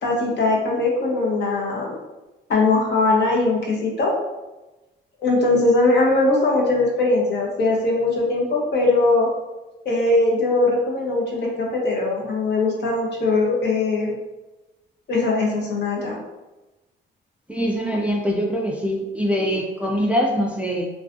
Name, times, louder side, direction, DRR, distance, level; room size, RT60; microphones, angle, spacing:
voice 1, 0.0-2.0 2.5-4.1 5.2-9.3 9.8-14.2 15.1-16.2, left 2 dB, 60° left, -2 dB, 0.8 m, -20 dB
voice 2, 17.5-20.9, equal, 5° right, -1 dB, 0.3 m, -23 dB
2.4 x 2.2 x 2.5 m, 1.1 s
cardioid pair, 90°, 20 cm